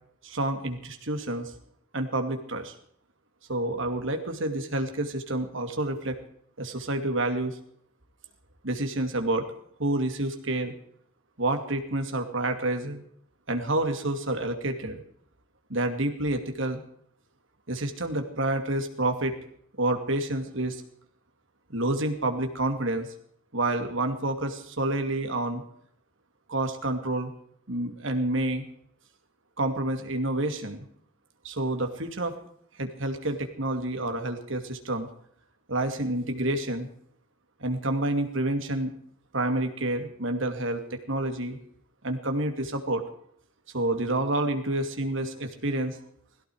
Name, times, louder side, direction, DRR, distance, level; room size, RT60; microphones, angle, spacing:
voice 1, 0.2-1.5 1.9-2.7 3.5-6.2 6.6-7.6 8.6-9.4 9.8-10.7 11.4-13.0 13.5-15.0 15.7-16.8 17.7-19.3 19.8-20.8 21.7-23.1 23.5-25.6 26.5-27.3 27.7-28.6 29.6-30.8 31.4-32.4 32.8-35.1 35.7-36.9 37.6-38.9 39.3-41.6 42.0-43.0 43.7-46.0, right 1 dB, 70° right, 6 dB, 2.5 m, -28 dB
18.0 x 16.0 x 4.9 m, 0.65 s
head